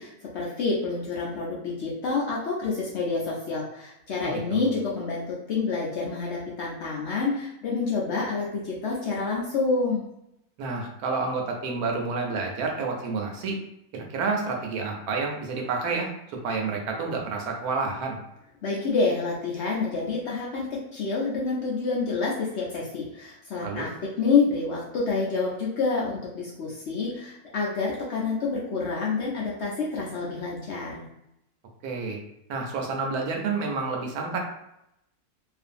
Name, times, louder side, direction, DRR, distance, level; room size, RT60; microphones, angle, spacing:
voice 1, 0.0-10.1 18.6-23.9 24.2-31.0, left 4 dB, 65° left, -4 dB, 0.7 m, -28 dB
voice 2, 4.2-4.7 10.6-13.5 13.9-16.1 16.4-18.2 23.6-23.9 31.8-32.2 32.5-34.4, right 4 dB, 85° right, 1 dB, 1.1 m, -29 dB
2.6 x 2.5 x 2.5 m, 0.82 s
omnidirectional pair, 1.6 m